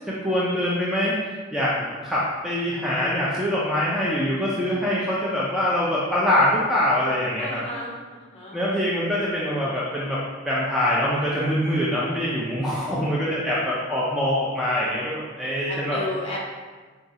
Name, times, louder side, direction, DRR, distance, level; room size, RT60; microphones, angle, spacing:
voice 1, 0.1-7.6 8.5-16.0, left 1 dB, ahead, -7 dB, 0.3 m, -24 dB
voice 2, 7.4-8.6 15.7-16.4, left 1 dB, 30° left, -5 dB, 0.8 m, -33 dB
3.9 x 2.3 x 2.6 m, 1.4 s
head